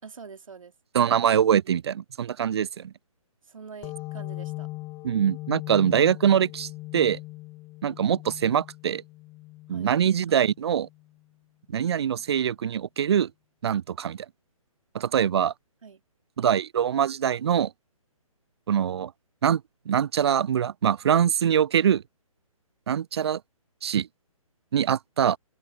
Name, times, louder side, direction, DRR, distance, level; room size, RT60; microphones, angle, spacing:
voice 1, 0.0-0.7 3.4-4.7 9.7-9.9 15.8-16.0, right 5 dB, 65° right, 2.8 m, -45 dB
voice 2, 0.9-2.9 5.0-7.2 7.8-9.0 9.7-10.9 11.7-13.3 13.6-14.3 14.9-15.5 16.4-17.7 18.7-19.1 19.4-19.6 19.9-22.0 22.9-23.4 23.8-24.1 24.7-25.4, right 9 dB, 45° right, 0.5 m, -23 dB
sound 1, 3.8-11.1, left 20 dB, 20° left, 1.7 m, -40 dB
open air
figure-of-eight pair, 140°, 18 cm